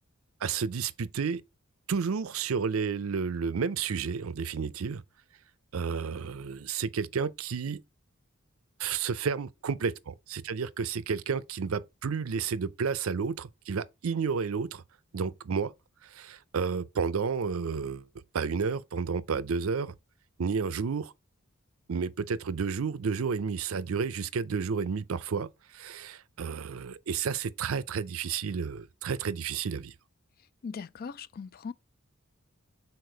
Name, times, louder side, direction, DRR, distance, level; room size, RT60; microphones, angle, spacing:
voice 1, 0.4-1.4 1.9-5.0 5.7-7.8 8.8-14.8 15.1-15.7 16.0-18.1 18.3-20.0 20.4-21.1 21.9-29.9, right 5 dB, 75° right, 0.5 m, -31 dB
voice 2, 30.6-31.7, left 5 dB, 45° left, 0.3 m, -39 dB
6.6 x 4.2 x 3.9 m
head